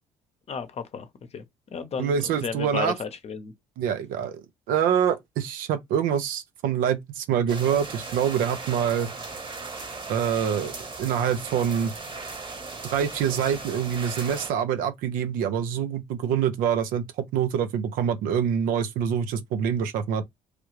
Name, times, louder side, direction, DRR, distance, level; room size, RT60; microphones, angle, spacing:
voice 1, 0.5-1.1 1.3-3.5, left 6 dB, 45° left, 0.7 m, -33 dB
voice 2, 2.0-2.9 3.8-4.4 4.7-9.1 10.1-11.9 12.9-20.2, right 8 dB, 80° right, 0.5 m, -25 dB
sound 1, 7.5-14.5, right 3 dB, 35° right, 1.1 m, -37 dB
3.2 x 2.4 x 3.1 m
supercardioid pair, 65°, 14 cm